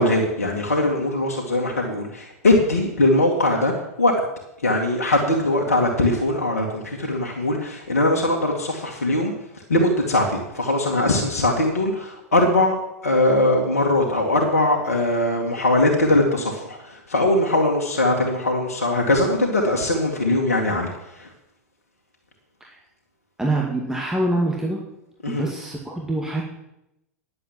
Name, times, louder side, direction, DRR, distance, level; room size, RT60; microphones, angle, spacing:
voice 1, 0.0-3.7 4.0-4.2 4.6-12.8 13.0-21.3 25.2-25.4, left 1 dB, 75° left, 0 dB, 2.1 m, -21 dB
voice 2, 23.4-24.8 25.3-26.4, right 1 dB, 5° right, -2 dB, 2.1 m, -25 dB
10.5 x 7.8 x 7.5 m, 0.86 s
figure-of-eight pair, 95°, 8 cm